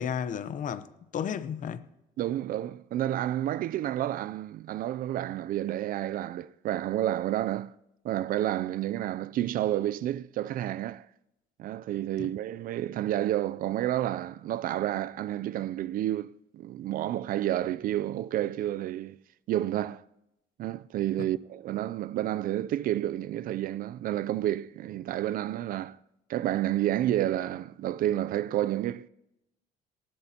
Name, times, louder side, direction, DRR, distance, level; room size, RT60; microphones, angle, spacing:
voice 1, 0.0-1.9 12.2-12.3 21.2-21.3, left 8 dB, 50° left, 0.8 m, -33 dB
voice 2, 2.2-7.7 8.0-11.1 11.6-19.2 19.5-20.0 20.6-26.0 26.3-29.1, right 13 dB, 60° right, 0.4 m, -30 dB
19.0 x 17.5 x 2.9 m
cardioid pair, 110°, 17 cm